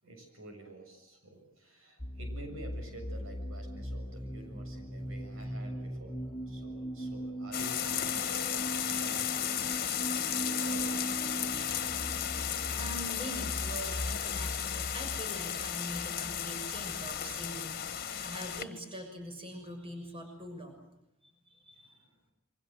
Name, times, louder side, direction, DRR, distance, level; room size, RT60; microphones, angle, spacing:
voice 1, 0.0-10.0 10.3-10.9 21.9-22.0, right 2 dB, 75° right, 4 dB, 7.3 m, -49 dB
sound 1, 2.0-17.5, right 1 dB, 15° left, 2.5 m, -40 dB
sound 2, 7.5-18.6, left 9 dB, 45° left, 2.0 m, -34 dB
voice 2, 8.9-9.6 11.5-12.1 12.7-20.8 21.2-22.1, equal, 25° right, 4 dB, 6.5 m, -44 dB
28.0 x 24.5 x 7.7 m, 0.83 s
head